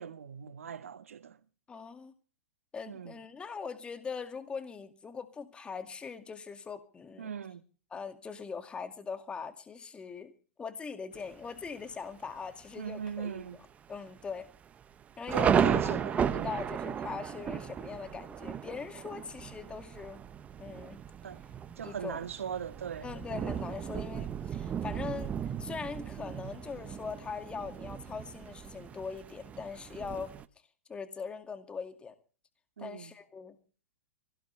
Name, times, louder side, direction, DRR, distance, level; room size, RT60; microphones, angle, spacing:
voice 1, 0.0-1.4 2.9-3.1 7.2-7.6 12.8-13.6 15.3-16.5 21.2-21.4 21.8-23.6 32.8-33.1, right 7 dB, 85° right, 1.5 m, -40 dB
voice 2, 1.7-2.1 2.7-7.3 7.9-10.3 10.6-13.5 13.9-14.5 15.2-20.3 20.6-21.0 21.8-22.2 23.0-30.3 30.9-32.2 32.8-33.6, left 5 dB, 15° left, 2.1 m, -41 dB
Thunder, 11.1-11.7 12.2-12.3 12.6-13.0 13.4-13.5 14.2-30.5, right 8 dB, 20° right, 1.0 m, -35 dB
24.5 x 17.0 x 3.3 m
hypercardioid pair, 130°, 7 cm